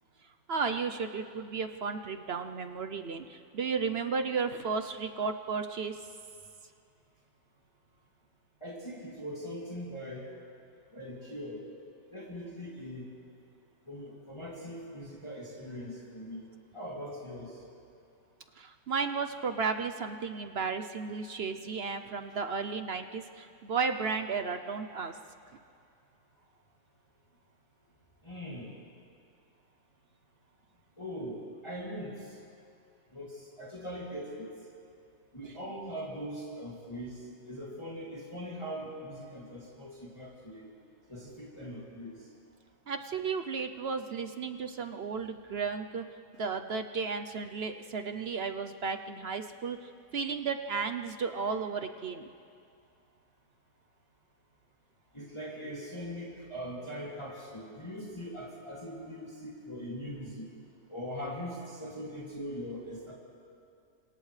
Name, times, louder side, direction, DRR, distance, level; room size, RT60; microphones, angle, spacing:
voice 1, 0.5-6.0 18.6-25.1 35.4-35.5 42.9-46.1 46.4-52.3, right 5 dB, 55° right, 7 dB, 0.7 m, -34 dB
voice 2, 8.6-10.3 10.9-11.7 12.1-13.1 13.9-16.5 16.7-17.6 28.2-28.8 31.0-32.4 33.1-34.5 35.3-40.7 41.1-42.2 55.1-60.5 60.9-63.1, equal, 15° left, -5 dB, 2.6 m, -41 dB
30.0 x 26.0 x 3.3 m, 2.4 s
omnidirectional pair, 1.7 m